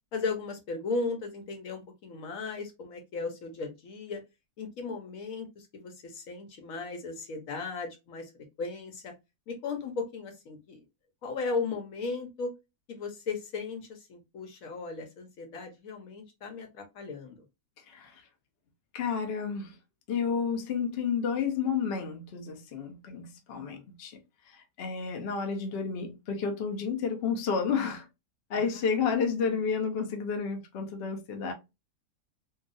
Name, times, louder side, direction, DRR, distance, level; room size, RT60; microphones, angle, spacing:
voice 1, 0.1-4.2 4.6-8.3 8.6-9.1 9.5-10.8 11.2-12.5 12.9-17.4 23.5-23.8 28.5-28.8, left 4 dB, 60° left, 1.1 m, -36 dB
voice 2, 17.9-18.2 18.9-19.8 20.1-24.2 24.5-28.1 28.5-31.5, left 6 dB, 80° left, 0.5 m, -31 dB
2.8 x 2.3 x 2.5 m
omnidirectional pair, 1.8 m